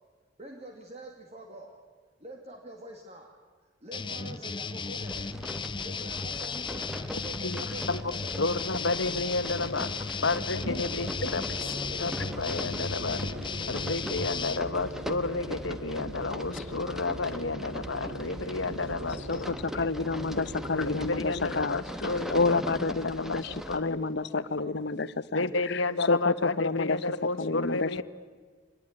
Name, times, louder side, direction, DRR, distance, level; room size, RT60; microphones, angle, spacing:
voice 1, 0.4-1.8 2.2-3.3 3.8-5.3 5.8-8.7 10.7-11.3 11.6-12.4 23.5-23.8 24.1-25.1 25.5-25.6, right 1 dB, 35° right, 2 dB, 2.6 m, -46 dB
sound 1, 3.9-14.6, left 5 dB, 25° left, 0.9 m, -35 dB
sound 2, 5.0-23.8, equal, ahead, 1.3 m, -41 dB
voice 2, 7.4-13.3 13.7-19.9 20.7-22.6 22.9-24.0 25.3-28.0, left 3 dB, 90° left, 11 dB, 1.6 m, -31 dB
sound 3, 10.5-21.6, equal, 80° right, 3.0 m, -42 dB
voice 3, 19.3-27.0 27.4-27.9, left 3 dB, 60° left, 16 dB, 0.9 m, -29 dB
25.5 x 20.5 x 9.9 m, 1.5 s
head